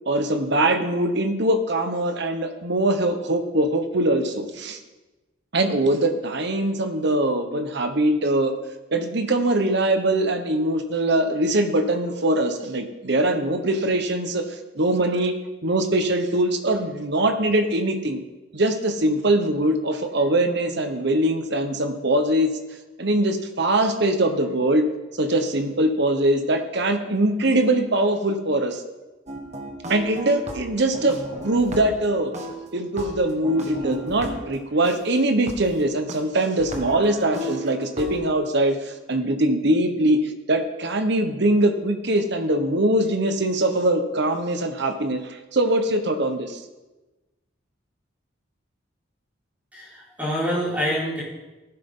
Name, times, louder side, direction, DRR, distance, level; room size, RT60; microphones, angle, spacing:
voice 1, 0.1-4.8 5.5-8.5 8.9-14.4 14.7-15.3 15.6-18.2 18.5-22.5 23.0-24.8 25.2-28.8 29.9-31.2 31.4-32.3 32.7-46.6, right 1 dB, 55° right, 7 dB, 1.2 m, -22 dB
sound 1, 29.3-32.1 32.3-35.0 35.5-35.6 36.1-36.2 36.6-38.2, equal, 35° right, 1.5 m, -35 dB
voice 2, 49.7-51.2, equal, 10° right, -7 dB, 4.7 m, -26 dB
15.0 x 11.5 x 3.8 m, 1.1 s
head